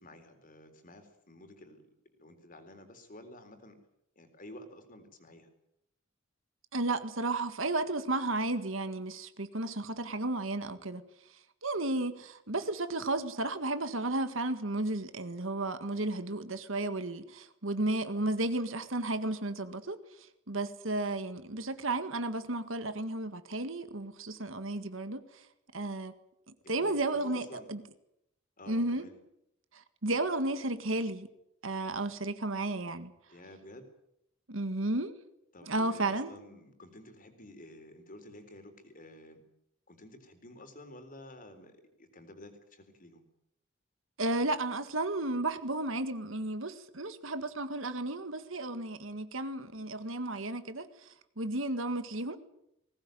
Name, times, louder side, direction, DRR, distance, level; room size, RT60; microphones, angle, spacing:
voice 1, 0.0-1.9 2.1-3.8 4.2-5.5 26.6-27.7 28.6-29.2 33.3-33.9 35.5-39.4 39.9-43.2, left 1 dB, 40° left, 4.0 m, -51 dB
voice 2, 6.7-11.1 11.6-20.0 20.5-25.3 25.7-26.1 26.7-27.8 28.7-29.1 29.7-31.3 31.6-33.1 34.5-35.1 35.6-36.3 44.2-50.9 51.4-52.4, right 2 dB, 70° right, 1.8 m, -33 dB
20.5 x 18.5 x 9.2 m
head